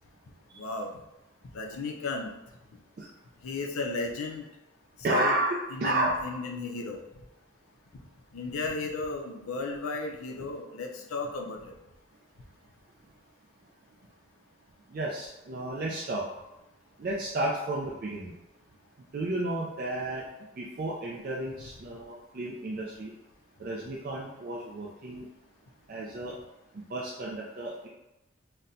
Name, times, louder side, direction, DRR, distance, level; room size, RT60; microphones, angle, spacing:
voice 1, 0.6-0.9 1.5-2.3 3.4-4.5 5.1-5.3 5.7-7.0 8.3-11.7, left 3 dB, 85° left, 2 dB, 0.5 m, -34 dB
voice 2, 5.0-6.2 14.9-16.2 17.0-18.3 19.1-20.2 20.6-23.1 23.6-25.3 25.9-26.4 26.9-27.9, right 2 dB, 45° right, -3 dB, 0.3 m, -32 dB
4.1 x 2.2 x 2.6 m, 0.93 s
head